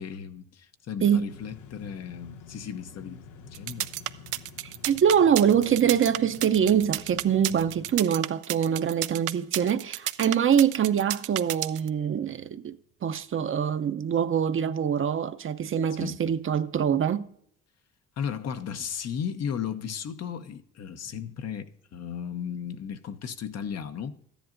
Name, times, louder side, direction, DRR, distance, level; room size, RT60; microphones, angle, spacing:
voice 1, 0.0-3.2 3.5-3.9 7.5-7.6 15.9-16.2 18.2-24.2, left 7 dB, 60° left, 0.8 m, -35 dB
sound 1, 1.3-8.0, left 5 dB, 80° left, 0.8 m, -48 dB
sound 2, 3.5-11.9, right 15 dB, 85° right, 0.5 m, -31 dB
voice 2, 4.6-12.8 13.0-17.2, right 8 dB, 45° right, 0.6 m, -24 dB
13.5 x 10.0 x 2.5 m
cardioid pair, 90°, 30 cm